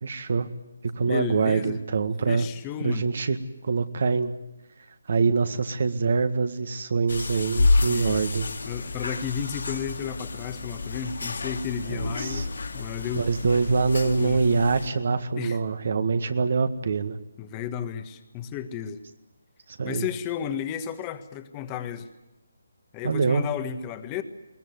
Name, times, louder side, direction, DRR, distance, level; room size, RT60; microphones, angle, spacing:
voice 1, 0.0-0.5 1.0-2.5 2.8-3.4 3.6-4.3 5.1-8.5 11.9-12.4 13.1-17.2 19.8-20.1 23.0-23.4, right 4 dB, 55° right, 9 dB, 1.8 m, -24 dB
voice 2, 1.0-1.8 2.3-3.1 7.7-8.2 8.6-12.5 12.7-13.3 14.0-14.4 15.3-15.6 17.4-19.0 19.8-22.1 22.9-24.2, left 8 dB, 20° left, 9 dB, 1.5 m, -33 dB
sound 1, 7.1-14.9, left 3 dB, 70° left, 2.7 m, -29 dB
21.5 x 19.0 x 9.6 m, 0.97 s
figure-of-eight pair, 150°, 0 cm